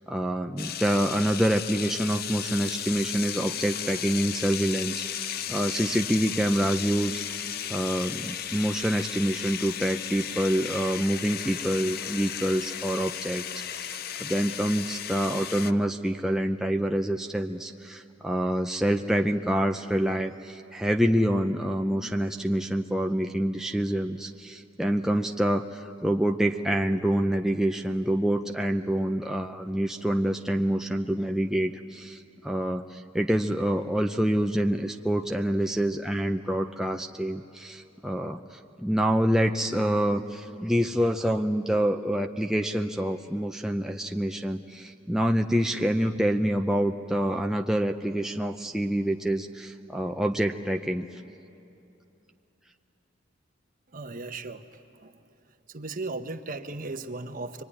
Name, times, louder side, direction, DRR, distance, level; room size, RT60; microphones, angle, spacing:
voice 1, 0.1-51.2, right 1 dB, 5° right, 3 dB, 0.6 m, -27 dB
sound 1, 0.6-15.7, left 9 dB, 55° left, 0.6 m, -35 dB
voice 2, 53.9-55.3 55.7-57.6, right 3 dB, 45° right, 7 dB, 1.1 m, -37 dB
24.5 x 23.5 x 10.0 m, 2.8 s
head